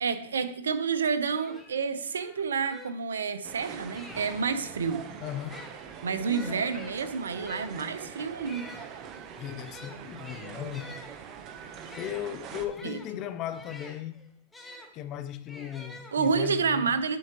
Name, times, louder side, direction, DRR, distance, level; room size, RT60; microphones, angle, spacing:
voice 1, 0.0-5.0 6.0-8.7 12.8-13.0 16.1-17.2, right 5 dB, 85° right, 0.8 m, -29 dB
sound 1, 1.0-1.1 1.3-4.6 5.3-14.9 15.5-16.6, left 2 dB, 10° left, 1.2 m, -49 dB
sound 2, 3.4-12.7, right 7 dB, 35° right, 0.9 m, -44 dB
voice 2, 5.2-5.7 6.3-6.7 9.4-11.0 12.0-14.2 14.9-16.9, left 11 dB, 40° left, 0.6 m, -37 dB
10.5 x 4.7 x 3.0 m
hypercardioid pair, 115°, 0 cm